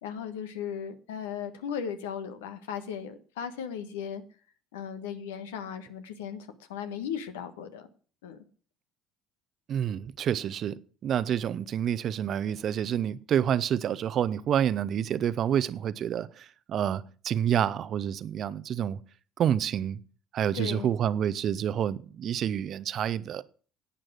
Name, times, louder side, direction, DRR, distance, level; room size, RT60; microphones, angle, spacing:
voice 1, 0.0-4.2 4.7-7.9 8.2-8.4 20.5-20.9, left 8 dB, 75° left, 1.3 m, -36 dB
voice 2, 9.7-19.0 19.4-20.0 20.3-23.4, right 9 dB, 50° right, 0.7 m, -28 dB
11.0 x 9.1 x 6.2 m
hypercardioid pair, 60°, 0 cm